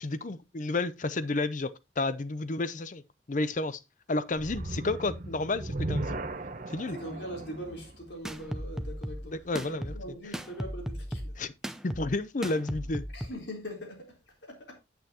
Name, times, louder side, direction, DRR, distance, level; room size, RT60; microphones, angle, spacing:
voice 1, 0.0-3.0 3.3-3.8 4.1-6.2 6.7-7.0 9.5-9.9 11.4-11.5 11.8-13.0, left 2 dB, 45° left, 0.6 m, -31 dB
sound 1, 4.4-9.6, right 2 dB, 45° right, 0.9 m, -37 dB
voice 2, 6.9-11.4 13.1-14.8, equal, 80° left, 3.7 m, -42 dB
sound 2, 8.2-13.3, equal, 5° right, 0.6 m, -37 dB
9.2 x 8.0 x 2.9 m
head